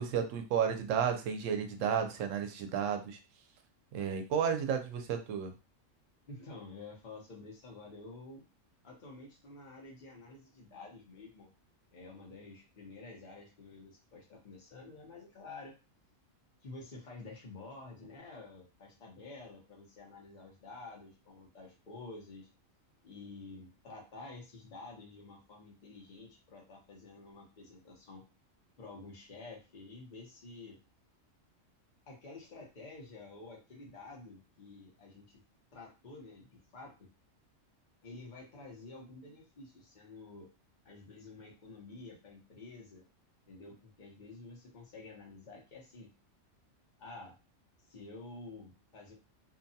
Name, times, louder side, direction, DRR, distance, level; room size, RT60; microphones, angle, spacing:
voice 1, 0.0-3.2 3.9-5.5, right 7 dB, 85° right, 6 dB, 0.9 m, -32 dB
voice 2, 6.3-8.4 8.8-11.5 11.9-15.7 16.6-22.5 23.0-28.2 28.8-30.8 32.1-35.4 35.7-37.1 38.0-40.5 40.8-43.0 43.5-46.1 47.0-47.3 47.9-49.1, left 3 dB, 40° left, -2 dB, 0.9 m, -50 dB
2.7 x 2.2 x 2.7 m, 0.30 s
omnidirectional pair, 1.3 m